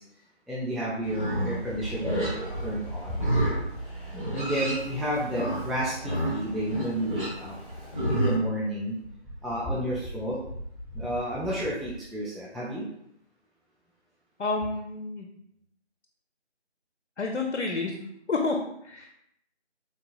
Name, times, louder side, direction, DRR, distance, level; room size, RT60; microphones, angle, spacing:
voice 1, 0.5-3.3 4.3-7.5 8.1-9.0 9.4-10.4 10.9-12.8, right 1 dB, ahead, -6 dB, 0.3 m, -31 dB
Livestock farm animals working animals, 1.0-8.4, right 1 dB, 45° right, 1.1 m, -31 dB
voice 2, 14.4-15.3 17.2-18.0 18.3-19.1, left 3 dB, 80° left, 2 dB, 0.6 m, -29 dB
3.7 x 2.5 x 2.3 m, 0.74 s
figure-of-eight pair, 170°, 34 cm